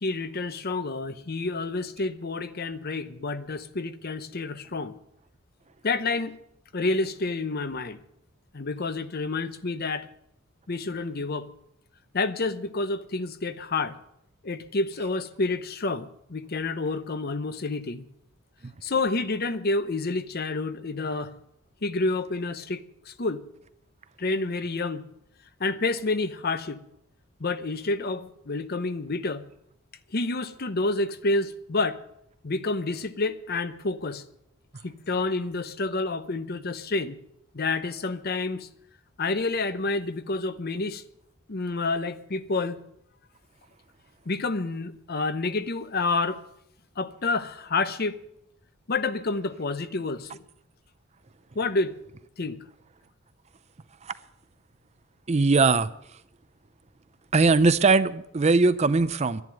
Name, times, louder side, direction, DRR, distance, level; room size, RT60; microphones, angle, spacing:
voice 1, 0.0-5.0 5.8-6.4 6.7-8.0 8.5-10.1 10.7-11.5 12.1-14.0 14.4-18.0 18.8-21.4 21.8-23.4 24.2-25.0 25.6-26.8 27.4-29.4 30.1-32.0 32.4-34.2 34.8-37.2 37.5-38.7 39.2-41.0 41.5-42.8 44.3-46.4 47.0-48.2 48.9-50.4 51.5-51.9 52.4-52.6, left 3 dB, 45° left, 0.8 m, -29 dB
voice 2, 55.3-55.9 57.3-59.4, right 3 dB, 30° right, 0.5 m, -20 dB
11.5 x 11.0 x 9.0 m
head